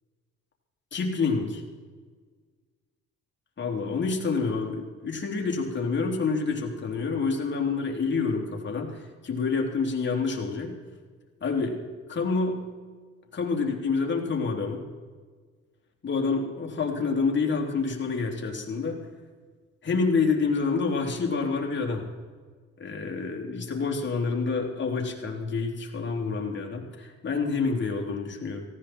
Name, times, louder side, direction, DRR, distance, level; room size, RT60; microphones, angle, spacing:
voice 1, 0.9-1.6 3.6-10.8 11.4-11.8 12.1-12.6 13.3-14.8 16.0-19.0 19.8-22.1 22.8-28.6, left 4 dB, 40° left, 0 dB, 3.3 m, -28 dB
18.0 x 15.5 x 4.5 m, 1.5 s
cardioid pair, 90°, 30 cm